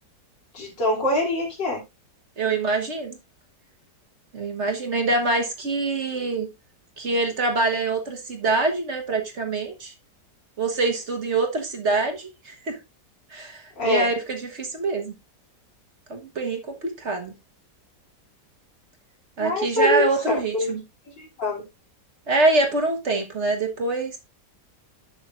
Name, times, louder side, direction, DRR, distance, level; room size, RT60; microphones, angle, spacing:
voice 1, 0.5-1.8 13.8-14.1 19.4-20.1 20.5-20.7 21.4-21.6, left 1 dB, 90° left, 3.6 m, -23 dB
voice 2, 2.4-3.2 4.3-6.5 7.0-9.9 10.6-12.8 13.3-15.1 16.1-17.3 19.4-20.8 22.3-24.2, right 3 dB, 45° right, 1.6 m, -25 dB
11.0 x 6.8 x 2.5 m
omnidirectional pair, 1.9 m